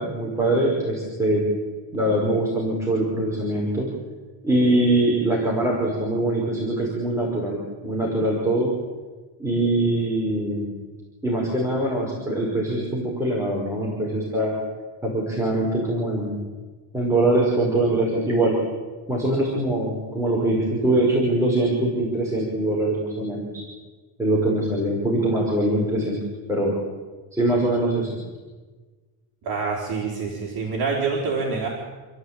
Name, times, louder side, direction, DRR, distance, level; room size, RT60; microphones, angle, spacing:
voice 1, 0.0-1.4 1.9-3.9 4.4-8.7 9.4-10.8 11.2-14.5 15.0-16.4 16.9-18.5 19.1-23.5 24.2-26.2 26.5-26.7 27.3-28.2, right 1 dB, 5° right, -4 dB, 5.2 m, -23 dB
voice 2, 29.4-31.7, right 4 dB, 45° right, -2 dB, 5.0 m, -26 dB
29.0 x 15.0 x 9.1 m, 1.4 s
cardioid pair, 165°, 49 cm